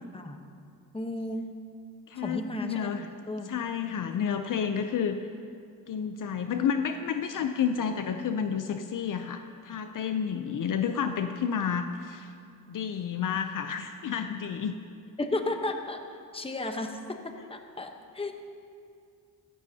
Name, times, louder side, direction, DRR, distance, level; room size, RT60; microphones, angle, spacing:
voice 1, 0.9-1.5 2.2-3.0 3.3-3.5 15.2-16.0 16.3-18.3, left 2 dB, 15° left, 5 dB, 1.0 m, -33 dB
voice 2, 2.1-3.1 3.5-5.2 5.9-12.3 12.7-14.8, left 7 dB, 60° left, 7 dB, 0.6 m, -30 dB
15.5 x 14.0 x 2.8 m, 2.4 s
cardioid pair, 105°, 36 cm